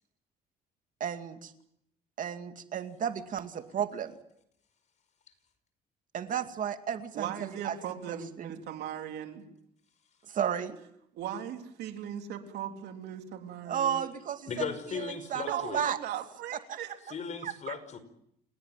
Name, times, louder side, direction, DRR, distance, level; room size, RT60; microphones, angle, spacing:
voice 1, 1.0-1.5 2.2-4.1 6.1-7.8 8.1-8.5 10.3-10.8 13.7-16.0 16.7-16.8 17.4-17.7, right 8 dB, 50° right, 7 dB, 2.3 m, -33 dB
voice 2, 7.1-9.4 11.2-14.0 15.5-17.0, right 9 dB, 75° right, 5 dB, 3.7 m, -38 dB
voice 3, 14.5-15.8 17.1-18.0, left 6 dB, 45° left, 11 dB, 5.3 m, -37 dB
29.5 x 17.5 x 9.2 m, 0.74 s
cardioid pair, 110°, 17 cm